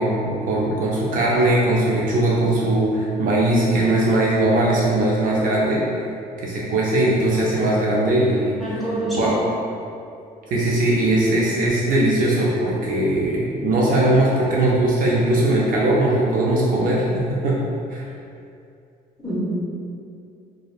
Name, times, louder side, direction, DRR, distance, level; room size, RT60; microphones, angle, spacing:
voice 1, 0.0-5.9 6.4-9.4 10.5-17.6 17.9-18.1, right 1 dB, 55° right, -4 dB, 0.4 m, -20 dB
voice 2, 8.6-9.3 19.2-19.4, right 1 dB, ahead, -9 dB, 0.7 m, -26 dB
2.5 x 2.2 x 2.3 m, 2.5 s
cardioid pair, 110°, 17 cm